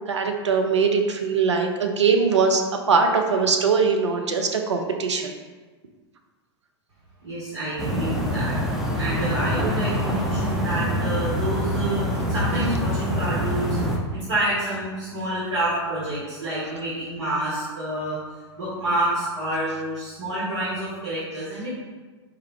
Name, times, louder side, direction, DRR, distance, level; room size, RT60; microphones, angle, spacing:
voice 1, 0.1-5.3, right 5 dB, 75° right, 4 dB, 0.5 m, -21 dB
voice 2, 7.2-8.6 9.0-13.8 14.1-18.2 18.6-21.7, right 1 dB, 60° right, -8 dB, 1.3 m, -28 dB
sound 1, 7.8-14.0, equal, ahead, 0.4 m, -25 dB
4.5 x 2.4 x 3.1 m, 1.3 s
figure-of-eight pair, 95°, 15 cm